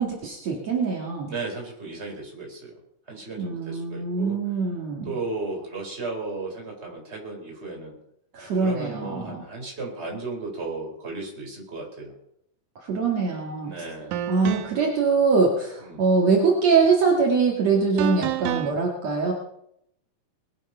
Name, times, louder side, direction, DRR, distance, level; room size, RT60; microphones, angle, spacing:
voice 1, 0.0-1.3 3.4-5.1 8.3-9.4 12.9-13.7 14.3-19.3, right 4 dB, 55° right, -1 dB, 3.1 m, -23 dB
voice 2, 1.3-2.8 3.1-4.4 5.0-7.9 8.5-12.1 13.6-14.2 15.8-16.0, right 3 dB, 20° right, 0 dB, 4.3 m, -35 dB
sound 1, 13.3-13.5 14.1-14.9 18.0-18.7, right 12 dB, 85° right, 2.3 m, -29 dB
21.0 x 9.5 x 5.7 m, 0.75 s
omnidirectional pair, 3.7 m